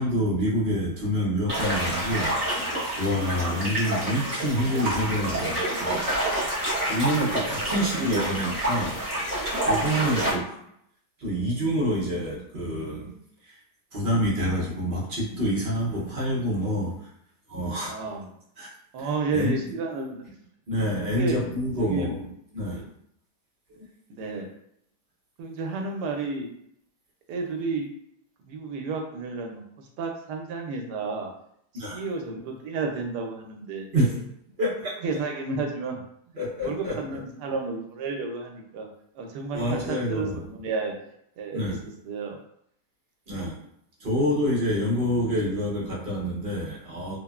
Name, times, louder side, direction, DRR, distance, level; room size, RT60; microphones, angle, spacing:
voice 1, 0.0-6.1 6.9-9.0 9.6-10.6 11.2-13.1 13.5-13.6 13.9-17.1 17.5-18.0 18.6-18.7 19.0-19.6 20.7-22.2 22.5-22.9 31.7-32.0 33.9-34.3 34.6-34.9 36.3-37.0 39.5-40.6 41.5-41.8 43.3-43.6 44.0-47.2, equal, 50° right, -6 dB, 0.7 m, -27 dB
sound 1, 1.5-10.3, right 1 dB, 25° right, 1.0 m, -28 dB
voice 2, 3.4-3.7 7.9-8.4 9.9-10.3 17.8-18.3 18.9-20.2 21.1-21.4 21.8-22.1 22.7-22.8 24.1-24.5 25.4-26.5 27.3-27.9 28.5-31.3 31.7-33.9 35.0-36.0 36.6-38.9 39.1-41.0 41.4-41.8 42.0-42.4, right 3 dB, 80° right, 2 dB, 1.1 m, -31 dB
3.3 x 2.1 x 2.3 m, 0.72 s
omnidirectional pair, 1.8 m